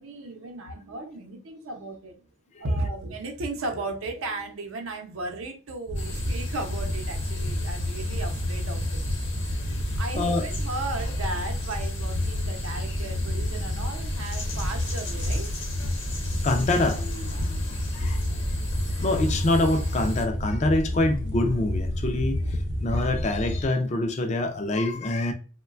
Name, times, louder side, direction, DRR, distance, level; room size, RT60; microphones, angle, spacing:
voice 1, 0.0-2.1 2.6-9.0 10.0-15.5 19.0-19.1, right 2 dB, 85° right, 0.6 m, -35 dB
sound 1, 5.9-20.2, left 2 dB, 60° left, 0.8 m, -39 dB
sound 2, 5.9-23.6, left 1 dB, 35° right, 0.4 m, -29 dB
voice 2, 10.1-10.5 16.4-17.0 18.0-18.2 19.0-22.4 22.8-25.3, left 2 dB, 35° left, 0.3 m, -25 dB
3.0 x 2.2 x 2.4 m
head